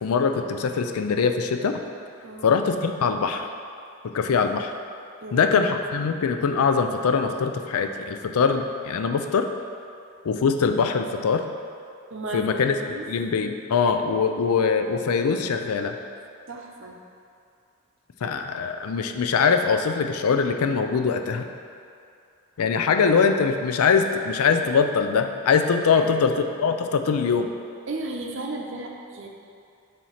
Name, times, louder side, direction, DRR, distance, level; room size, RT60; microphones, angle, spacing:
voice 1, 0.0-1.7 2.4-3.5 4.1-4.7 5.3-9.5 10.2-11.4 12.3-12.7 13.1-16.0 18.2-21.5 22.6-26.3 26.6-27.5, left 5 dB, 85° left, 6 dB, 0.4 m, -22 dB
voice 2, 5.2-5.6 5.9-6.1 12.1-13.1 16.5-17.0 25.9-26.4 27.9-29.3, right 2 dB, 60° right, 1 dB, 0.7 m, -35 dB
7.3 x 2.8 x 5.6 m, 2.5 s
head